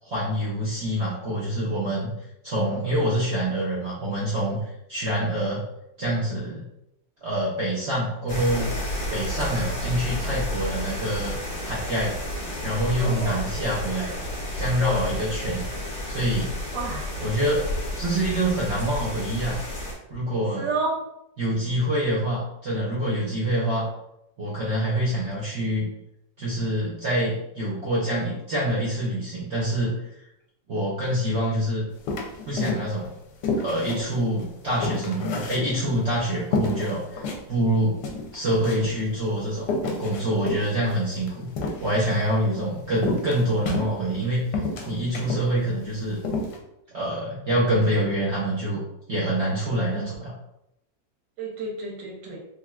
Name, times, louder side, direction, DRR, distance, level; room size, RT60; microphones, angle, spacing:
voice 1, 0.0-2.1 2.4-5.6 6.0-6.7 7.2-8.7 9.1-11.3 11.6-12.2 12.6-14.1 14.6-15.7 16.1-16.5 17.2-17.7 18.0-19.6 20.1-20.7 21.4-23.9 24.4-25.9 26.4-29.9 30.7-31.9 32.5-33.1 33.6-38.0 38.3-39.7 40.0-41.5 41.8-46.2 46.9-48.8 49.1-50.3, right 1 dB, 60° right, -6 dB, 0.7 m, -26 dB
sound 1, 8.3-19.9, left 1 dB, 40° left, 1.1 m, -31 dB
voice 2, 13.0-13.4 16.7-17.1 20.6-21.0 49.9-50.1 51.4-52.4, right 3 dB, 80° right, -2 dB, 1.4 m, -30 dB
sound 2, 32.1-33.1 33.4-36.1 36.5-37.4 37.8-37.9 38.0-39.0 39.6-42.2 43.0-44.2 44.5-45.5 45.8-45.9 46.2-46.6, left 3 dB, 75° left, 1.1 m, -29 dB
3.5 x 2.5 x 2.3 m, 0.83 s
omnidirectional pair, 1.9 m